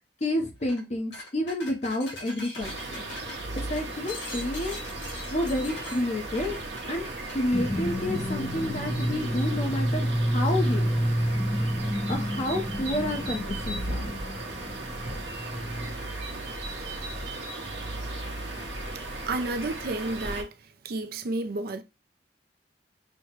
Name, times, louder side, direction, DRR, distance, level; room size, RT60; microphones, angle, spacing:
voice 1, 0.2-3.0 3.7-4.7 5.3-6.6 6.9-7.1 7.3-11.0 12.1-14.1, left 1 dB, 40° left, 0.9 m, -30 dB
sound 1, 0.6-0.8 1.1-7.4, left 2 dB, 85° left, 1.5 m, -42 dB
sound 2, 2.6-20.4, right 2 dB, 85° right, 1.1 m, -36 dB
sound 3, 7.5-15.9, equal, 10° left, 0.4 m, -29 dB
voice 2, 19.3-20.5 20.8-21.8, right 2 dB, 60° right, 0.5 m, -31 dB
6.2 x 2.2 x 3.0 m
head